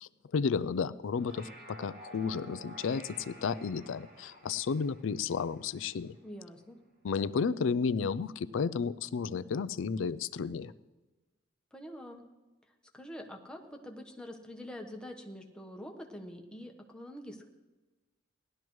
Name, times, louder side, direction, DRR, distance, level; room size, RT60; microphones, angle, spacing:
voice 1, 0.0-6.2 7.0-10.7, left 5 dB, 75° left, 15 dB, 0.4 m, -32 dB
sound 1, 1.0-6.5, right 2 dB, 70° right, 4.2 m, -52 dB
voice 2, 6.2-6.8 11.7-12.2 12.9-17.4, equal, 5° left, 2 dB, 1.1 m, -45 dB
18.5 x 12.0 x 3.1 m, 1.2 s
head